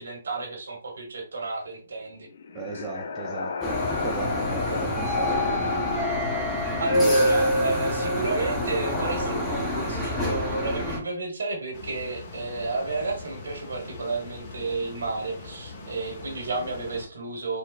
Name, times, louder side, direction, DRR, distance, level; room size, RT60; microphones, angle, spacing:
voice 1, 0.0-2.3 6.8-17.6, right 3 dB, 70° right, 1.3 m, -31 dB
sound 1, 2.1-9.9, left 5 dB, 55° left, 0.5 m, -35 dB
voice 2, 2.5-6.0, right 5 dB, 20° right, 0.4 m, -37 dB
sound 2, 3.6-11.0, left 1 dB, 10° left, 0.8 m, -26 dB
sound 3, 11.7-17.1, left 3 dB, 35° left, 0.9 m, -42 dB
4.0 x 2.1 x 2.4 m
figure-of-eight pair, 135°, 0 cm